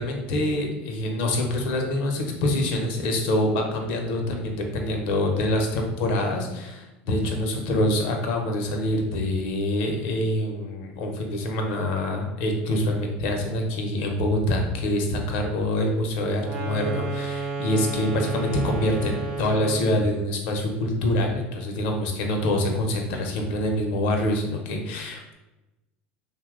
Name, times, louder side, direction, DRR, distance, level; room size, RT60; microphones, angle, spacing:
voice 1, 0.0-25.3, left 1 dB, 70° left, 2 dB, 0.6 m, -25 dB
sound 1, 16.4-20.0, right 4 dB, 70° right, 0.7 m, -31 dB
2.8 x 2.1 x 3.5 m, 1.0 s
hypercardioid pair, 90°, 6 cm